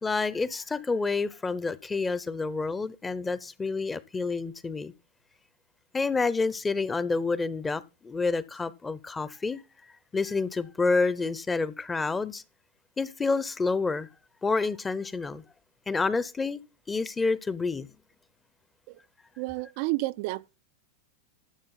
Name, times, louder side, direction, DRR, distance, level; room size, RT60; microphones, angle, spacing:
voice 1, 0.0-4.9 5.9-9.6 10.1-12.4 13.0-14.1 14.4-15.4 15.9-16.6 16.9-17.9, left 4 dB, 15° left, 0.8 m, -28 dB
voice 2, 19.4-20.6, right 21 dB, 55° right, 0.4 m, -31 dB
11.5 x 7.5 x 3.9 m
hypercardioid pair, 110°, 0 cm